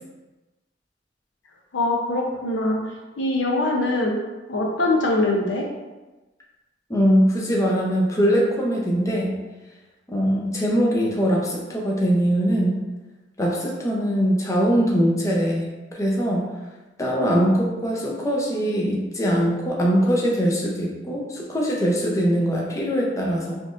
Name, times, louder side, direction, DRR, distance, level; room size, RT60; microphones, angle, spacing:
voice 1, 1.7-2.8 3.2-4.2 4.5-5.6, left 2 dB, 75° left, 0 dB, 0.6 m, -22 dB
voice 2, 6.9-9.4 10.1-12.8 13.4-16.4 17.0-23.6, equal, 20° left, -3 dB, 0.6 m, -22 dB
4.2 x 3.0 x 2.5 m, 1.1 s
head